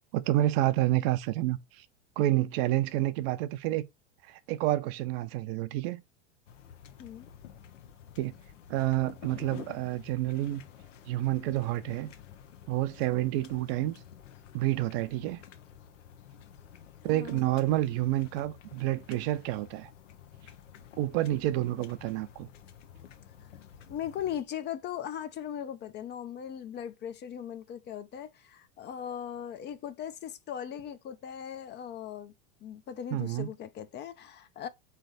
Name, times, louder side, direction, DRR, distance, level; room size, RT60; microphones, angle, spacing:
voice 1, 0.1-1.9 2.2-3.9 4.2-6.0 8.2-8.3 8.7-10.6 11.1-12.1 12.7-14.0 14.5-15.4 17.0-19.9 21.0-22.5 33.1-33.5, right 15 dB, 55° right, 0.6 m, -29 dB
sound 1, 6.5-24.4, left 9 dB, 80° left, 0.8 m, -51 dB
voice 2, 17.1-17.4 23.9-32.3 32.6-34.7, left 9 dB, 30° left, 0.5 m, -39 dB
3.8 x 3.3 x 4.0 m
hypercardioid pair, 110°, 36 cm